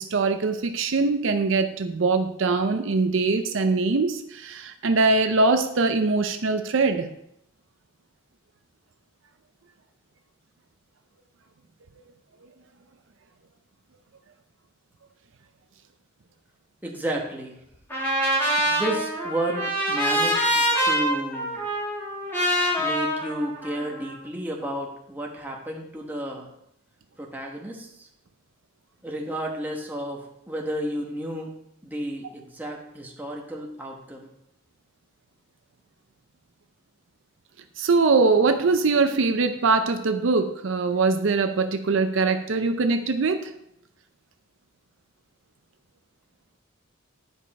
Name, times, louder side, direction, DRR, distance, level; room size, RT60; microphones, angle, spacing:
voice 1, 0.0-7.1 37.8-43.4, right 3 dB, 65° right, 7 dB, 0.5 m, -22 dB
voice 2, 16.8-17.6 18.6-21.6 22.8-26.5 27.2-28.1 29.0-30.2 30.5-31.5 31.8-34.3, right 1 dB, 10° right, -1 dB, 1.2 m, -32 dB
Trumpet, 17.9-24.1, equal, 10° left, 2.3 m, -25 dB
9.8 x 5.2 x 4.2 m, 0.78 s
head